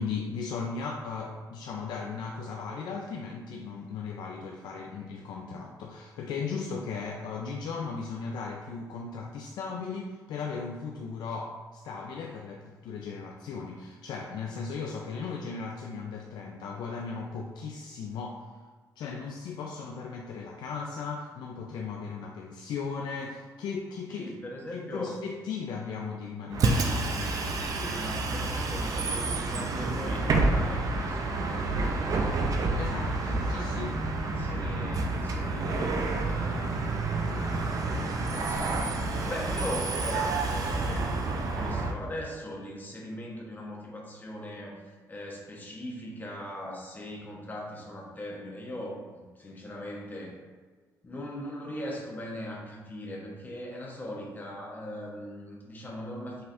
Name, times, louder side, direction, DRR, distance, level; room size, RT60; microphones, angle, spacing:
voice 1, 0.0-18.5 19.0-24.3 24.7-27.4 32.8-34.0, left 5 dB, 75° left, 0 dB, 0.4 m, -37 dB
voice 2, 24.1-25.2 27.7-33.8 34.2-50.4 51.0-56.4, left 1 dB, 25° left, -2 dB, 1.1 m, -40 dB
Bus, 26.5-41.9, right 3 dB, 55° right, 0.6 m, -29 dB
5.6 x 3.4 x 2.6 m, 1.5 s
cardioid pair, 100°, 7 cm